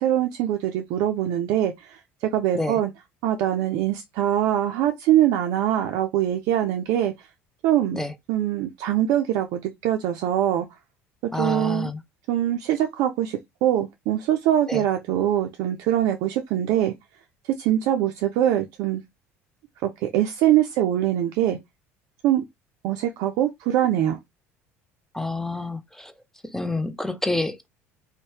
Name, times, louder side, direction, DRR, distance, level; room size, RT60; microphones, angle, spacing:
voice 1, 0.0-2.9 3.2-7.3 7.6-8.0 8.3-10.7 11.4-11.9 12.3-16.9 17.6-19.0 19.8-21.6 22.2-22.4 22.8-24.2, right 12 dB, 60° right, 0.4 m, -23 dB
voice 2, 11.3-12.0 14.7-14.8 25.1-26.1 26.5-27.7, left 2 dB, 5° left, 0.4 m, -28 dB
2.7 x 2.1 x 3.0 m
hypercardioid pair, 65°, 8 cm